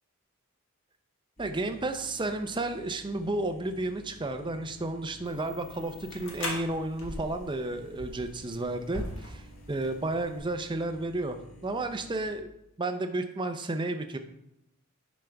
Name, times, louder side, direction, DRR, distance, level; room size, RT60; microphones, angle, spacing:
sound 1, 1.4-12.3, equal, 35° left, 1.4 m, -53 dB
voice 1, 1.4-9.4 9.7-11.4 11.6-12.5 12.8-14.2, right 2 dB, 20° right, 7 dB, 0.6 m, -32 dB
sound 2, 5.3-10.5, left 1 dB, 60° left, 1.5 m, -41 dB
10.5 x 5.2 x 3.4 m, 0.83 s
head